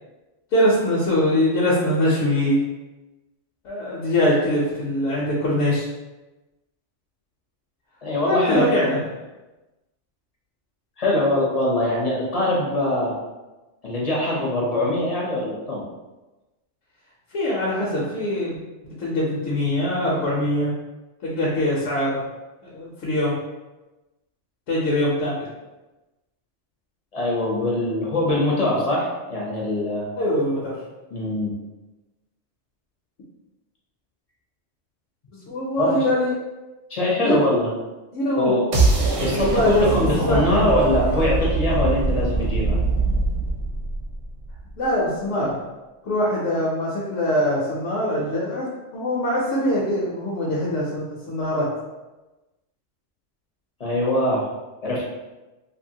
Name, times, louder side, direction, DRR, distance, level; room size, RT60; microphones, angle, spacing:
voice 1, 0.5-2.6 3.6-5.9 8.2-9.0 17.3-18.6 18.8-20.7 21.2-22.3 22.6-23.4 24.7-25.5 30.2-30.8 35.5-36.3 37.2-37.6 38.1-38.5 39.3-39.9 40.2-41.0 44.8-45.6 46.0-51.7, left 1 dB, 80° left, -5 dB, 1.0 m, -23 dB
voice 2, 8.0-8.7 11.0-13.1 13.8-15.8 27.1-30.1 31.1-31.5 35.8-36.0 36.9-37.7 38.3-38.7 39.2-42.8 53.8-54.4 54.8-55.1, left 1 dB, 45° left, -4 dB, 0.5 m, -22 dB
sound 1, 38.7-44.7, right 3 dB, 60° right, 0.9 m, -23 dB
2.7 x 2.6 x 2.7 m, 1.1 s
omnidirectional pair, 1.3 m